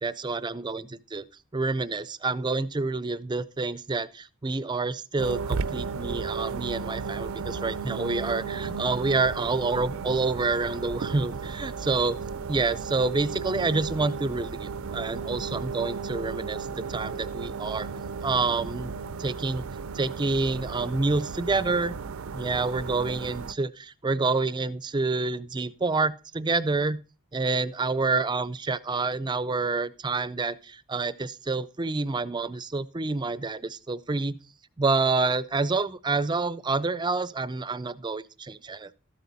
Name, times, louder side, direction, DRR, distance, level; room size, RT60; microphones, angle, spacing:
voice 1, 0.0-1.2 1.5-12.2 12.5-17.9 18.2-19.6 19.9-22.0 22.3-27.0 27.3-34.4 34.8-39.0, right 3 dB, 20° right, 17 dB, 0.4 m, -28 dB
sound 1, 5.2-23.5, right 5 dB, 75° right, 0.5 m, -34 dB
13.0 x 8.3 x 4.0 m, 0.34 s
head